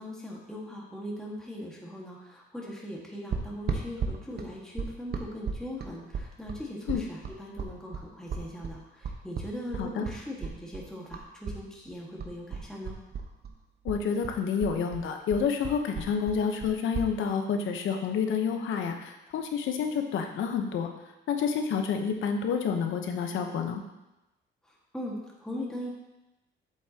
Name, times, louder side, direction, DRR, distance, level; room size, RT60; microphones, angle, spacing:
voice 1, 0.0-13.0 24.9-25.9, equal, 5° left, -4 dB, 1.7 m, -40 dB
sound 1, 3.3-11.6 11.9-13.6 13.8-17.1, right 5 dB, 55° right, 1.1 m, -35 dB
voice 2, 13.8-20.9 21.3-23.8, left 6 dB, 80° left, 5 dB, 1.0 m, -29 dB
8.5 x 7.3 x 2.9 m, 0.97 s
cardioid pair, 90°, 20 cm